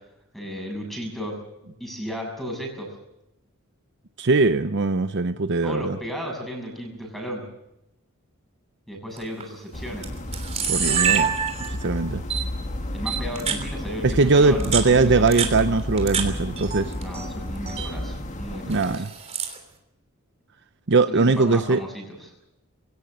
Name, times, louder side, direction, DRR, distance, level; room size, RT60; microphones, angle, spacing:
voice 1, 0.3-1.4 1.8-2.9 5.6-7.4 8.9-10.1 10.9-11.2 12.9-15.5 17.0-19.0 21.1-22.3, equal, ahead, 2 dB, 7.0 m, -34 dB
voice 2, 4.2-6.0 10.7-11.3 11.7-12.2 14.0-16.9 18.7-19.1 20.9-21.8, right 3 dB, 55° right, 11 dB, 0.7 m, -20 dB
Camera, 9.2-9.4 10.0-10.1 10.3-11.9 12.3-12.4 13.1-13.6 14.5-16.3 16.6-17.3 17.6-17.9 18.7-19.6, right 7 dB, 30° right, 3.2 m, -26 dB
sound 1, 9.7-18.9, left 1 dB, 35° left, 1.6 m, -32 dB
21.5 x 18.0 x 7.8 m, 0.87 s
head